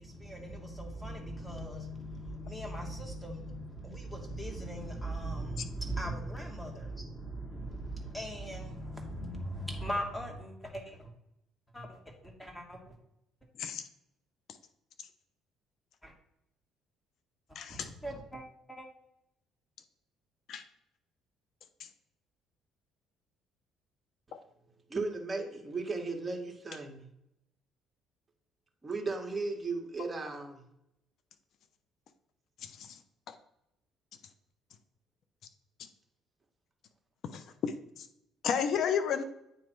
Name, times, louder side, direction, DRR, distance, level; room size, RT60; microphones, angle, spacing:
voice 1, 0.0-11.1 11.7-12.9 16.0-16.1 17.7-18.9, right 1 dB, 10° left, 2.1 m, -39 dB
voice 2, 17.5-17.9 20.5-20.6 32.6-33.0 37.3-38.1 38.4-39.2, left 7 dB, 60° left, 0.7 m, -32 dB
voice 3, 24.9-27.1 28.8-30.6, right 3 dB, 20° right, 1.6 m, -36 dB
8.9 x 3.3 x 4.6 m
hypercardioid pair, 65°, 0 cm